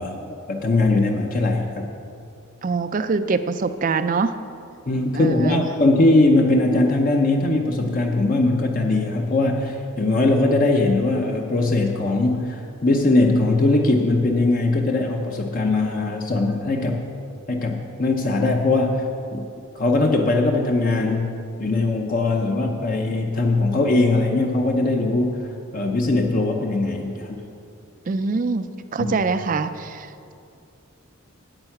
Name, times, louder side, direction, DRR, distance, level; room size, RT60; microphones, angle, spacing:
voice 1, 0.0-1.9 4.9-17.0 17.5-19.5 19.7-27.4 29.0-29.1, left 2 dB, 40° left, 2 dB, 0.6 m, -20 dB
voice 2, 2.6-4.4 5.1-5.7 28.1-28.7 28.9-30.3, right 4 dB, 40° right, 11 dB, 0.4 m, -24 dB
8.9 x 8.8 x 5.8 m, 2.5 s
head